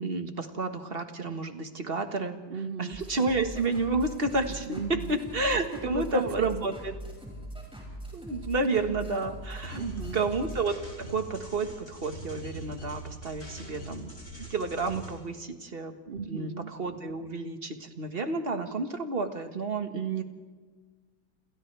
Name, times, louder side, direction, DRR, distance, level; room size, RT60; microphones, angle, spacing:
voice 1, 0.0-2.4 2.8-6.9 8.1-9.8 10.1-14.1 14.4-16.0 16.2-16.5 16.8-20.2, right 3 dB, 35° right, 6 dB, 1.8 m, -30 dB
voice 2, 2.5-3.0 4.7-5.2 5.8-6.7 9.8-10.2 16.1-16.7, right 6 dB, 60° right, 12 dB, 0.5 m, -35 dB
sound 1, 2.9-10.6, right 1 dB, 5° right, 6.4 m, -42 dB
sound 2, 9.6-15.1, left 1 dB, 40° left, 7.3 m, -43 dB
29.0 x 28.0 x 3.5 m, 1.3 s
omnidirectional pair, 1.8 m